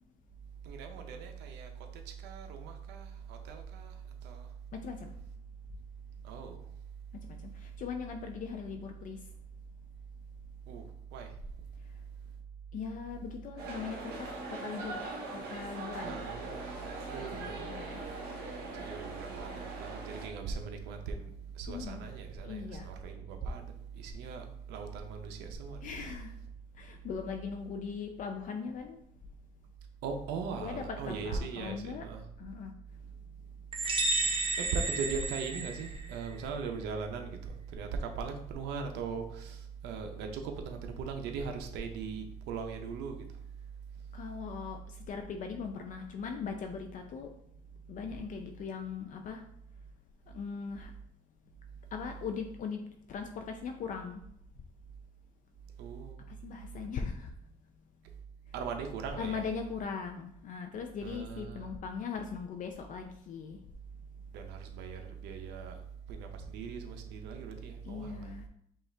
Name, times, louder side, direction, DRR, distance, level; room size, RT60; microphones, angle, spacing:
voice 1, 0.6-3.9 4.2-4.5 6.2-6.6 10.7-11.3 16.0-17.6 18.9-19.5 19.8-23.7 23.9-25.8 30.0-32.2 34.6-43.3 55.8-56.2 58.5-59.4 61.0-61.7 64.3-65.8 66.1-68.3, right 5 dB, 90° right, 5 dB, 0.6 m, -39 dB
voice 2, 4.7-5.1 7.1-9.3 11.8-12.0 12.7-16.2 17.3-18.0 21.7-22.0 22.4-22.9 25.8-26.4 26.7-29.0 30.5-32.1 32.4-32.7 33.9-34.5 44.1-47.3 47.9-49.4 50.3-50.9 51.9-52.8 53.1-54.2 56.3-57.3 59.2-63.6 67.8-68.4, left 6 dB, 50° left, 4 dB, 0.4 m, -40 dB
sound 1, 13.6-20.3, right 3 dB, 70° right, 1.1 m, -41 dB
sound 2, 33.7-36.3, right 2 dB, 30° right, 0.7 m, -32 dB
5.3 x 2.4 x 3.2 m, 0.71 s
cardioid pair, 110°, 17 cm